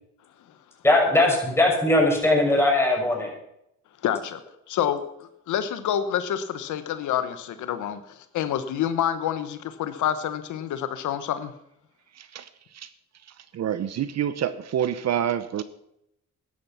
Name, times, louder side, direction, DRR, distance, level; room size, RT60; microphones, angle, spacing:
voice 1, 0.8-3.4, left 1 dB, 10° left, 0 dB, 6.5 m, -20 dB
voice 2, 4.0-4.4 4.7-11.5, left 10 dB, 80° left, 11 dB, 1.1 m, -28 dB
voice 3, 13.5-15.6, right 9 dB, 60° right, 14 dB, 0.9 m, -26 dB
14.0 x 11.0 x 5.8 m, 0.78 s
cardioid pair, 90°, 30 cm